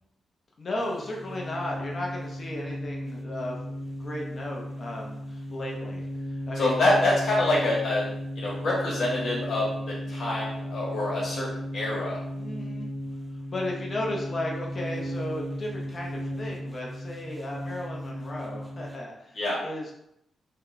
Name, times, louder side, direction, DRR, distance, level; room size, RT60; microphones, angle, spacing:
voice 1, 0.6-7.0 12.3-12.9 13.5-19.9, left 1 dB, 35° left, -2 dB, 0.7 m, -35 dB
sound 1, 0.8-19.0, equal, ahead, 0.4 m, -35 dB
voice 2, 6.6-8.1 8.4-12.2 19.3-19.6, left 2 dB, 50° left, -5 dB, 1.2 m, -26 dB
2.9 x 2.2 x 3.8 m, 0.78 s
wide cardioid pair, 165°, 0 cm